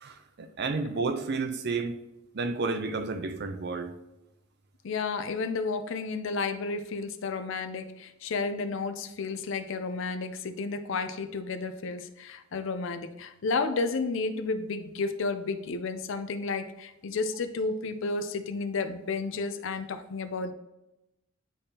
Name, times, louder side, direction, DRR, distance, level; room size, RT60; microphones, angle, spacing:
voice 1, 0.0-2.0 2.3-3.9, right 4 dB, 50° right, 0.5 m, -31 dB
voice 2, 4.8-20.5, left 4 dB, 65° left, 0.5 m, -32 dB
9.9 x 3.4 x 2.8 m
head